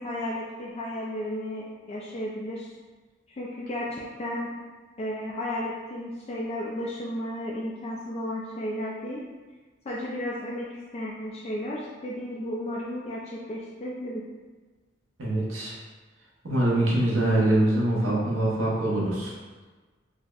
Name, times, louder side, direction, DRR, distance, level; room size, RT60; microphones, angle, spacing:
voice 1, 0.0-2.7 3.3-4.5 5.0-9.2 9.8-14.2, left 1 dB, 35° left, -5 dB, 0.3 m, -33 dB
voice 2, 15.2-15.7 16.4-19.3, right 1 dB, 85° right, -5 dB, 0.8 m, -24 dB
4.9 x 2.0 x 2.4 m, 1.3 s
head